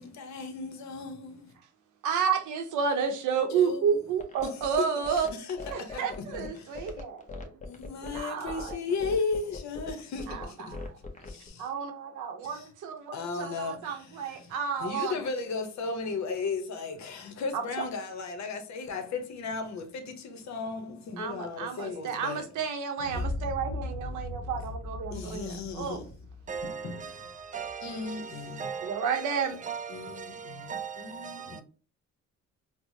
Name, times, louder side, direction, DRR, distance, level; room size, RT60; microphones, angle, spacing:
voice 1, 0.0-1.5 3.5-4.0 5.7-6.0 6.4-6.7 7.7-10.8 11.2-11.7 12.4-12.6 13.1-13.9 14.8-22.4 23.1-23.2 25.1-26.1 26.6-27.0 27.8-28.7 29.9-31.6, left 4 dB, 65° left, 0.8 m, -35 dB
voice 2, 2.0-5.3 5.7-7.2 8.0-8.8 10.3-10.9 11.6-15.2 17.5-17.8 21.2-26.0 28.8-29.6, right 6 dB, 85° right, 0.7 m, -31 dB
sound 1, 4.2-11.5, left 3 dB, 25° left, 0.6 m, -41 dB
sound 2, 23.0-27.7, left 2 dB, 50° left, 1.3 m, -38 dB
voice 3, 26.5-31.6, right 6 dB, 25° right, 0.4 m, -39 dB
4.5 x 2.1 x 2.6 m
cardioid pair, 90°, 30 cm